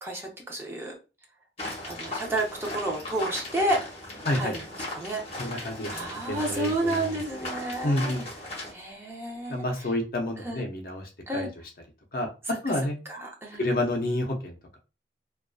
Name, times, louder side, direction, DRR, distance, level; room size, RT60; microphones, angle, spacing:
voice 1, 0.0-0.9 1.8-3.9 4.3-4.6 5.0-8.1 8.7-9.9 10.4-10.6 11.3-11.5 13.1-13.6, right 1 dB, 15° right, -1 dB, 0.5 m, -31 dB
sound 1, 1.6-8.7, left 2 dB, 35° left, 0.9 m, -37 dB
voice 2, 5.4-5.9 6.3-7.1 7.8-8.2 9.5-11.5 12.1-12.3 12.6-13.0 13.6-14.5, left 1 dB, 50° left, 3 dB, 0.5 m, -29 dB
2.5 x 2.3 x 2.3 m, 0.31 s
head